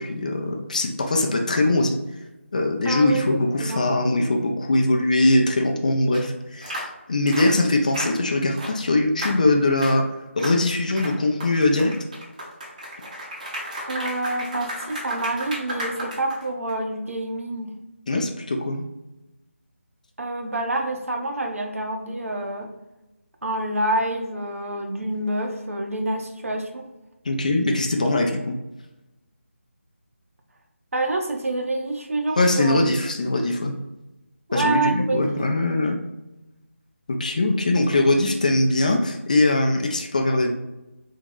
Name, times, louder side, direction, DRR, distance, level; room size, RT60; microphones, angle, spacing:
voice 1, 0.0-2.0 2.5-10.0 10.4-11.9 18.1-18.8 27.3-28.6 32.4-33.7 34.5-36.0 37.1-40.5, left 2 dB, 35° left, 3 dB, 0.4 m, -21 dB
voice 2, 2.8-3.2 3.6-3.9 13.9-17.7 20.2-22.7 23.4-26.8 30.9-32.8 34.5-35.4, right 2 dB, 80° right, 2 dB, 0.7 m, -27 dB
sound 1, 6.1-6.2 6.6-6.9 7.3-7.5 7.9-8.2 8.6-8.8 9.2-9.4 9.8-10.0 10.4-10.6 11.0-16.7, equal, 35° right, 0.6 m, -33 dB
3.5 x 2.0 x 3.6 m, 1.0 s
figure-of-eight pair, 170°, 7 cm